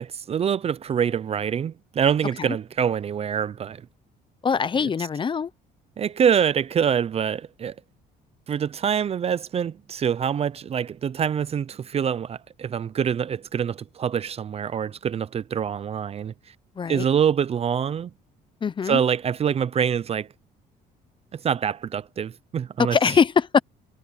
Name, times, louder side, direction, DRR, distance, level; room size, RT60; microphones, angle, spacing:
voice 1, 0.0-3.8 4.8-4.9 6.0-7.7 8.5-16.3 16.9-18.1 18.9-20.3 21.3-23.0, right 8 dB, 35° right, 0.6 m, -25 dB
voice 2, 4.4-5.5 16.8-17.1 18.6-19.0 22.8-23.6, left 6 dB, 30° left, 0.7 m, -22 dB
cardioid pair, 110°, 17 cm